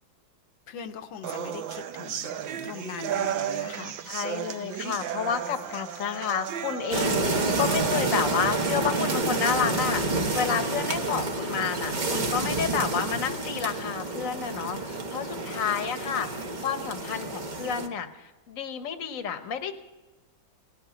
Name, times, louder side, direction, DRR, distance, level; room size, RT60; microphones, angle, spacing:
voice 1, 0.7-2.4 2.6-4.0, left 8 dB, 75° left, 7 dB, 1.5 m, -40 dB
sound 1, 1.2-9.2, right 9 dB, 75° right, 1.5 m, -34 dB
voice 2, 4.1-7.2 7.6-10.0 10.3-19.7, left 7 dB, 50° left, 9 dB, 1.3 m, -30 dB
Wind Through Hedge, 6.9-17.9, right 2 dB, 30° right, 0.9 m, -29 dB
18.5 x 8.0 x 9.7 m, 1.2 s
omnidirectional pair, 2.2 m